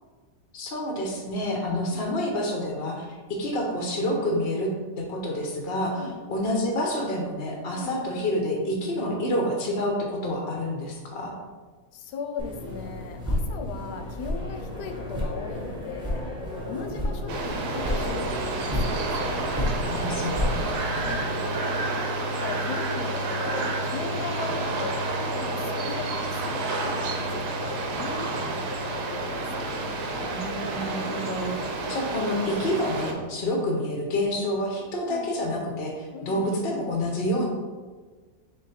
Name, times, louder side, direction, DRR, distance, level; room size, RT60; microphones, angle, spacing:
voice 1, 0.5-4.7 5.0-11.4 19.8-21.2 30.1-37.5, left 1 dB, 55° left, 0 dB, 0.6 m, -28 dB
voice 2, 7.7-8.2 11.9-16.2 16.7-19.9 21.0-21.6 22.3-29.9 35.1-35.3 36.1-36.7, left 5 dB, 75° left, 5 dB, 1.1 m, -38 dB
sound 1, 12.4-21.1, left 1 dB, 5° right, 0.6 m, -31 dB
sound 2, 17.3-33.1, right 2 dB, 70° right, 1.1 m, -29 dB
3.8 x 3.3 x 4.1 m, 1.4 s
omnidirectional pair, 1.9 m